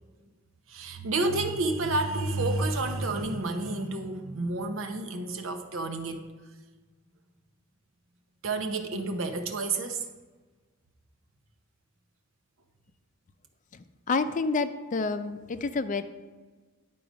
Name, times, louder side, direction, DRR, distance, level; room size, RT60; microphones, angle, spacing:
voice 1, 0.7-6.3 8.4-10.1, right 2 dB, 85° right, 6 dB, 0.8 m, -30 dB
voice 2, 13.7-16.0, left 4 dB, 40° left, 11 dB, 0.4 m, -29 dB
10.5 x 3.8 x 5.0 m, 1.3 s
head